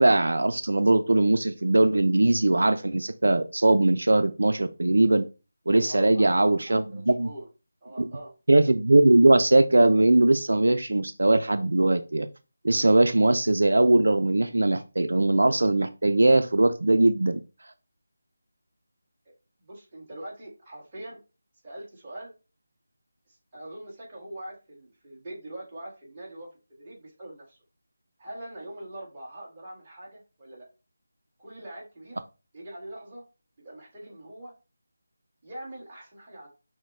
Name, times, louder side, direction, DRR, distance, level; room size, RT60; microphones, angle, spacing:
voice 1, 0.0-5.3 5.7-7.3 8.0-8.1 8.5-12.3 12.6-17.4, right 2 dB, 80° right, 9 dB, 0.4 m, -20 dB
voice 2, 5.8-6.4 6.7-7.5 7.8-8.3 19.3-19.4 19.6-21.2 21.6-22.3 23.3-27.6 28.2-30.7 31.4-32.2 32.5-33.2 33.6-34.5 35.4-36.5, right 1 dB, 20° right, -5 dB, 1.7 m, -43 dB
6.2 x 2.1 x 3.6 m, 0.30 s
figure-of-eight pair, 170°, 0 cm